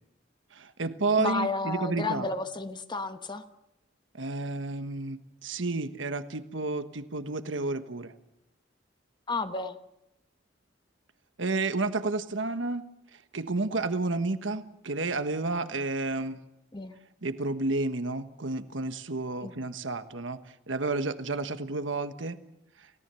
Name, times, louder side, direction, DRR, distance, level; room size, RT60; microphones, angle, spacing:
voice 1, 0.5-2.3 4.2-8.1 11.4-12.8 13.3-16.4 17.2-20.4 20.7-22.4, right 3 dB, 85° right, 10 dB, 1.3 m, -31 dB
voice 2, 1.2-3.4 9.3-9.8 16.7-16.9 19.4-19.5, left 3 dB, 25° left, 8 dB, 1.1 m, -32 dB
29.5 x 17.5 x 6.9 m, 0.86 s
head